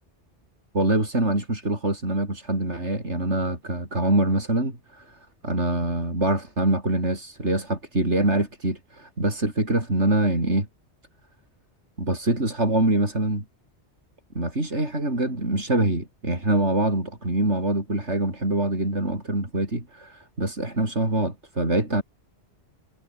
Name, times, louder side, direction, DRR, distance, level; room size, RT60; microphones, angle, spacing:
voice 1, 0.7-10.7 12.0-13.4 14.3-22.0, right 2 dB, 80° right, 6.3 m, -24 dB
omnidirectional pair, 1.2 m